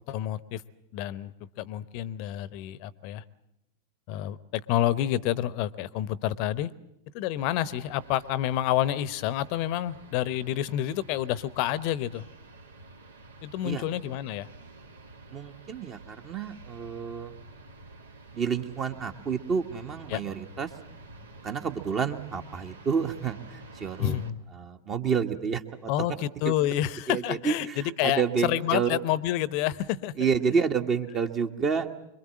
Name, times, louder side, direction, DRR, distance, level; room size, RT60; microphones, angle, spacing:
voice 1, 0.1-0.6 0.9-3.2 4.1-6.7 7.1-12.3 13.4-14.5 20.1-20.2 24.0-24.4 25.9-30.1, left 12 dB, 45° left, 19 dB, 0.9 m, -29 dB
sound 1, 7.4-24.3, right 2 dB, 70° right, 1.9 m, -49 dB
voice 2, 15.3-17.3 18.3-20.7 21.4-24.2 24.5-25.9 26.4-26.5 27.1-29.0 30.2-31.9, right 6 dB, 30° right, 5 dB, 1.4 m, -29 dB
25.5 x 22.5 x 7.6 m, 0.86 s
figure-of-eight pair, 90°, 0 cm